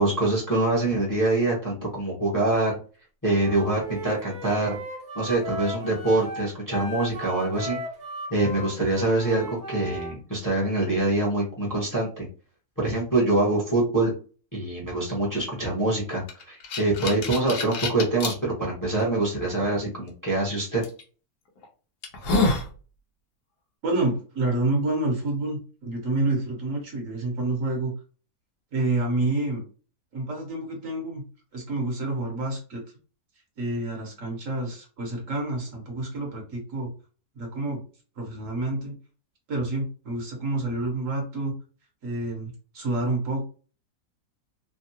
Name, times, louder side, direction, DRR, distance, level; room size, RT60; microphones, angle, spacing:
voice 1, 0.0-2.8 3.2-4.8 5.1-7.8 8.3-12.2 12.8-14.1 14.5-20.8, right 2 dB, 15° left, -4 dB, 0.8 m, -25 dB
Wind instrument woodwind instrument, 3.4-10.2, right 1 dB, 40° right, 0.8 m, -36 dB
sound 1, 16.3-18.3 19.0-19.1 20.8-21.0 21.6-21.7 22.0-22.7, left 3 dB, 80° left, 1.3 m, -26 dB
voice 2, 23.8-27.9 28.7-29.6 30.1-31.2 31.5-32.8 33.6-36.9 37.4-37.8 38.2-38.9 39.5-41.5 42.0-43.5, right 2 dB, 60° right, 0 dB, 1.2 m, -28 dB
3.4 x 2.2 x 2.8 m, 0.38 s
omnidirectional pair, 1.6 m